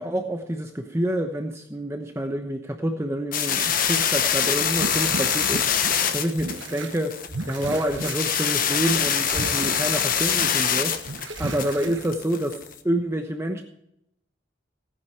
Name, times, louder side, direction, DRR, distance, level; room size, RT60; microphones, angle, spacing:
voice 1, 0.0-11.1 11.4-13.6, right 1 dB, 15° right, 4 dB, 1.0 m, -28 dB
sound 1, 3.3-12.7, left 8 dB, 45° left, 1.2 m, -24 dB
sound 2, 4.4-7.0 7.3-8.4 8.7-10.7 11.0-12.1, right 2 dB, 75° right, 1.3 m, -34 dB
17.0 x 10.0 x 4.7 m, 0.78 s
head